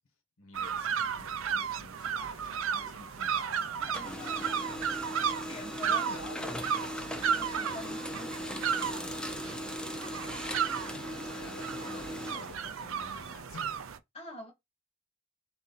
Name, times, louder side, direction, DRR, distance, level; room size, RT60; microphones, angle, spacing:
voice 1, 0.4-4.5 5.8-6.7 10.9-13.9, left 2 dB, 85° left, 1.2 m, -50 dB
sound 1, 0.5-14.0, right 7 dB, 70° right, 0.5 m, -34 dB
Printer, 2.3-3.5 3.8-13.4, left 1 dB, 5° left, 0.5 m, -39 dB
voice 2, 3.8-4.5 5.5-6.5 7.3-9.1 14.1-14.5, left 1 dB, 30° left, 1.4 m, -47 dB
3.9 x 2.9 x 4.0 m
head